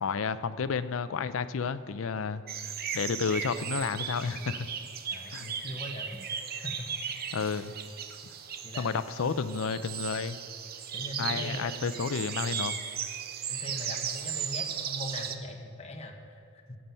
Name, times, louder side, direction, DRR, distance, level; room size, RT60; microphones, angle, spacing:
voice 1, 0.0-2.4 2.9-4.7 5.3-5.6 7.3-7.7 8.8-10.4 11.2-12.7, left 5 dB, 75° left, 13 dB, 0.5 m, -31 dB
Galleywood Common Soundscape, 2.5-15.4, right 7 dB, 45° right, 0.6 m, -36 dB
voice 2, 5.1-6.2 6.6-6.9 8.6-9.6 10.9-12.0 12.4-12.6 13.5-16.8, left 1 dB, 30° left, 2 dB, 1.1 m, -41 dB
15.0 x 7.6 x 5.6 m, 2.4 s
head